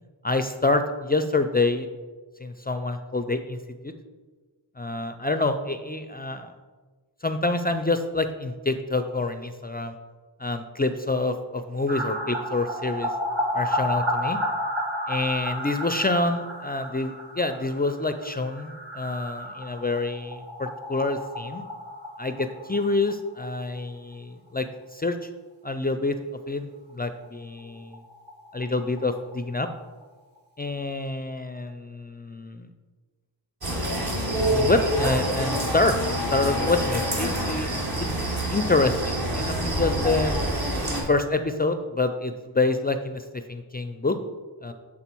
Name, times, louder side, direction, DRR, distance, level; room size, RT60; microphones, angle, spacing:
voice 1, 0.2-1.9 2.4-3.9 4.8-6.5 7.2-9.9 10.4-13.1 13.5-14.4 15.1-21.6 22.2-25.3 25.6-28.0 28.5-29.7 30.6-32.7 34.5-36.0 36.3-37.8 38.5-40.3 41.0-44.2 44.6-44.7, left 2 dB, 20° left, 8 dB, 0.3 m, -27 dB
sound 1, 11.9-23.5 23.8-23.9 24.1-24.2 27.2-27.3 27.6-27.7 27.9-29.7 30.0-30.1, equal, 75° right, 1.3 m, -32 dB
sound 2, 33.6-41.0, right 1 dB, 50° right, 1.7 m, -26 dB
7.0 x 3.7 x 4.4 m, 1.4 s
cardioid pair, 45°, 47 cm